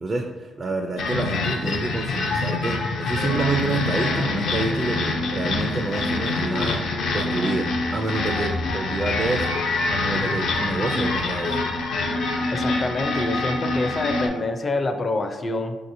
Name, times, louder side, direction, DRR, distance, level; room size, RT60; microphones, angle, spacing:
voice 1, 0.0-6.9 7.1-11.6, right 3 dB, 30° right, 2 dB, 0.4 m, -28 dB
sound 1, 1.0-14.3, left 3 dB, 75° left, 0.6 m, -25 dB
voice 2, 12.5-15.8, left 2 dB, 35° left, 6 dB, 0.4 m, -26 dB
5.8 x 2.8 x 2.6 m, 1.2 s
cardioid pair, 90°, 0 cm